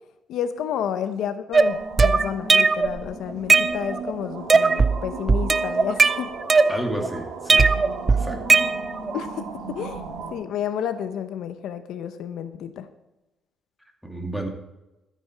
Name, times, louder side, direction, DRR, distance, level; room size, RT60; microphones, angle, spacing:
voice 1, 0.3-6.3 9.1-12.9, left 9 dB, 80° left, 11 dB, 0.7 m, -31 dB
sound 1, 1.5-3.0 3.3-4.1 4.5-5.0 5.3-7.1 7.5-9.1, right 4 dB, 30° right, 0.5 m, -18 dB
sound 2, 1.6-10.3, right 4 dB, 80° right, 3.0 m, -36 dB
voice 2, 6.7-7.7 8.1-8.6 14.0-14.5, right 1 dB, ahead, 2 dB, 2.3 m, -31 dB
14.0 x 8.4 x 4.6 m, 0.99 s
cardioid pair, 90°, 0 cm